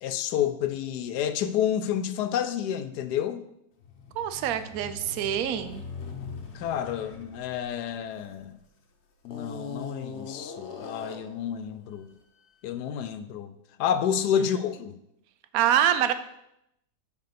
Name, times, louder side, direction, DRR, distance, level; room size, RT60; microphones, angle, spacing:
voice 1, 0.0-3.4 6.5-8.5 9.2-12.1 12.6-13.5 13.8-15.0, left 9 dB, 75° left, 1.1 m, -29 dB
sound 1, 3.8-8.6 9.2-11.4, left 5 dB, 50° left, 1.0 m, -41 dB
voice 2, 4.2-5.8 15.5-16.1, right 10 dB, 65° right, 1.0 m, -25 dB
6.7 x 5.1 x 6.7 m
omnidirectional pair, 1.8 m